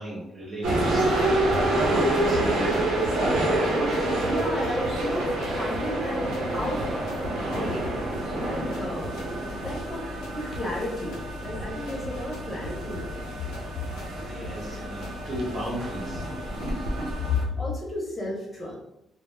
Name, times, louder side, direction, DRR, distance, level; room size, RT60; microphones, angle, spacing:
voice 1, 0.0-2.8 14.2-16.2 16.5-17.1, equal, 40° right, -4 dB, 0.9 m, -36 dB
sound 1, 0.6-17.4, right 1 dB, 85° right, 0.6 m, -28 dB
sound 2, 1.2-9.3 9.6-15.5, left 1 dB, 85° left, 0.6 m, -42 dB
voice 2, 4.2-6.9 7.5-7.8 8.4-9.1 9.6-10.1 10.3-13.1 17.6-18.8, left 1 dB, 25° left, -4 dB, 0.9 m, -33 dB
2.1 x 2.0 x 3.2 m, 0.81 s
cardioid pair, 90°, 0 cm